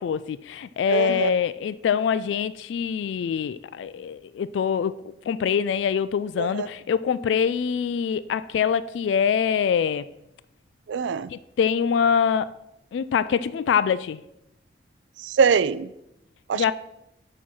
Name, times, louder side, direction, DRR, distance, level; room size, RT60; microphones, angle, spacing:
voice 1, 0.0-5.0 5.3-10.1 11.3-12.5 12.9-14.2 16.5-16.7, left 7 dB, 80° left, 15 dB, 0.3 m, -24 dB
voice 2, 0.9-1.3 6.4-6.7 10.9-11.3 15.2-15.9 16.5-16.7, right 6 dB, 85° right, 16 dB, 0.4 m, -23 dB
8.1 x 4.5 x 6.2 m, 0.85 s
head